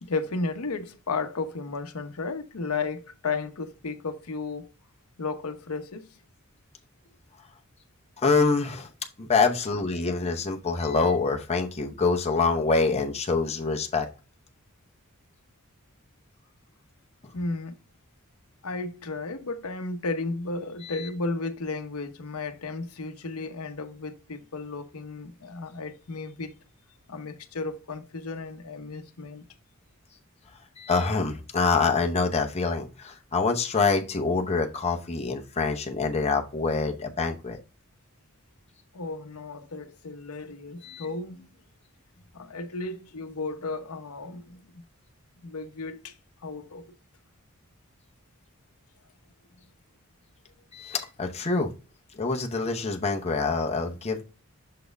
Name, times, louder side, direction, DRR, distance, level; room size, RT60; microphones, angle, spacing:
voice 1, 0.0-4.7 5.2-6.1 17.3-17.8 18.6-26.5 27.1-29.4 38.9-41.5 42.3-44.6 45.4-46.1 46.4-46.8, left 3 dB, 80° left, 0.8 m, -34 dB
voice 2, 8.2-8.9 9.2-14.1 20.8-21.1 30.8-37.6 40.8-41.1 50.7-51.7 52.2-54.2, left 4 dB, 30° left, 0.8 m, -26 dB
6.6 x 4.2 x 3.4 m
head